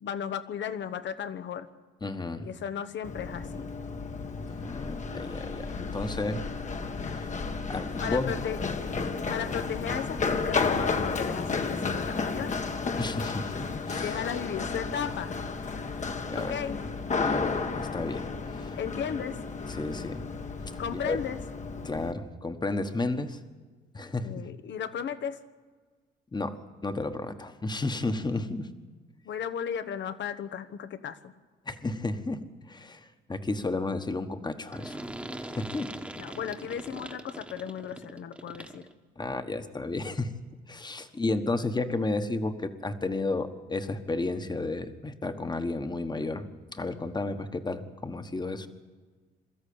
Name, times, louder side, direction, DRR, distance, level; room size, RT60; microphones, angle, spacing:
voice 1, 0.0-1.7 2.4-3.7 8.0-8.6 9.3-12.5 14.0-15.3 16.4-16.8 18.8-19.4 20.8-21.4 24.2-25.4 29.2-31.3 36.2-38.9, left 8 dB, 65° left, 11 dB, 1.2 m, -35 dB
voice 2, 2.0-2.5 4.5-6.4 7.1-7.3 7.7-8.3 13.0-14.2 16.3-16.5 17.2-18.8 19.8-20.2 20.9-21.2 21.8-23.4 23.9-24.4 26.3-28.7 31.7-32.4 32.7-35.0 35.4-35.9 39.2-40.3 40.7-48.7, left 2 dB, 20° left, 8 dB, 1.4 m, -32 dB
Run, 3.0-22.1, left 4 dB, 35° left, 1.4 m, -32 dB
sound 1, 34.7-38.9, right 1 dB, 5° right, 1.4 m, -41 dB
23.0 x 13.5 x 8.7 m, 1.4 s
cardioid pair, 90°, 20 cm